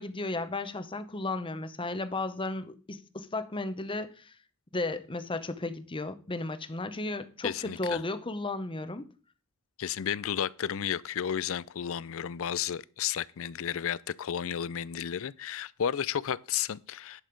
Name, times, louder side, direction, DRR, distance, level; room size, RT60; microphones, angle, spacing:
voice 1, 0.0-4.3 4.7-9.1, left 2 dB, 25° left, 0.8 m, -34 dB
voice 2, 7.4-8.0 9.8-17.2, left 9 dB, 65° left, 0.4 m, -32 dB
11.0 x 6.4 x 5.2 m
head